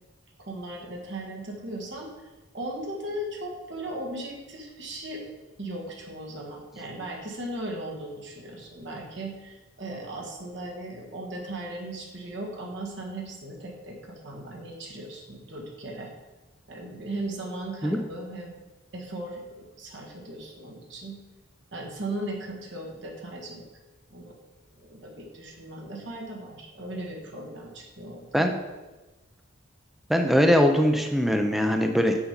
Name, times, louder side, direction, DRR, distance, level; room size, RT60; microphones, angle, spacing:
voice 1, 0.5-2.3 2.5-5.2 5.6-16.1 16.7-18.6 18.9-21.2 21.7-23.6 24.1-24.3 24.8-28.5, right 1 dB, 60° right, -1 dB, 1.6 m, -37 dB
voice 2, 30.1-32.2, equal, ahead, 4 dB, 0.4 m, -21 dB
7.1 x 5.1 x 5.2 m, 1.1 s
head